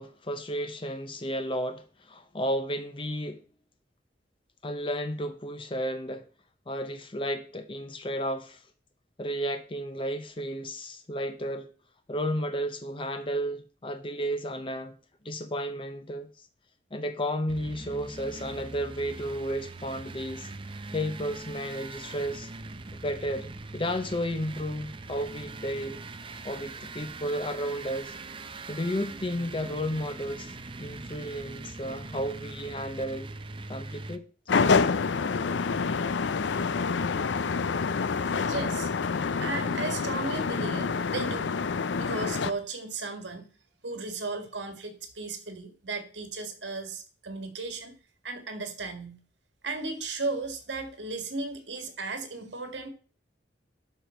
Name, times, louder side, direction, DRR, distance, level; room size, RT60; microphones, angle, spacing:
voice 1, 0.0-3.4 4.6-6.2 6.7-8.6 9.2-11.7 12.1-15.0 15.2-16.3 16.9-20.5 20.9-22.5 22.9-26.0 26.4-28.1 28.7-33.3 33.7-34.3, equal, 30° left, 0.7 m, -33 dB
sound 1, 17.5-34.2, right 3 dB, 30° right, 0.6 m, -42 dB
sound 2, 34.5-42.5, left 5 dB, 85° left, 0.5 m, -27 dB
voice 2, 38.2-38.9 39.4-41.5 42.0-43.5 43.8-48.0 48.2-49.2 49.6-52.9, right 3 dB, 85° right, 1.8 m, -35 dB
12.0 x 5.2 x 4.4 m
head